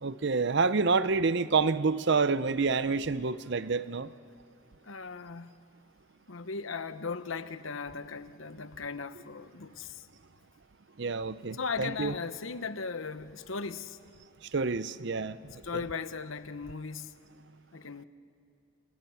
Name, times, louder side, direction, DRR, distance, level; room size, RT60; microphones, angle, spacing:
voice 1, 0.0-4.1 11.0-12.1 14.5-15.8, right 4 dB, 60° right, 0.6 m, -28 dB
voice 2, 4.9-5.5 6.3-9.9 11.6-14.0 15.6-17.2 17.7-18.0, left 4 dB, 80° left, 1.1 m, -37 dB
29.0 x 28.5 x 7.2 m
head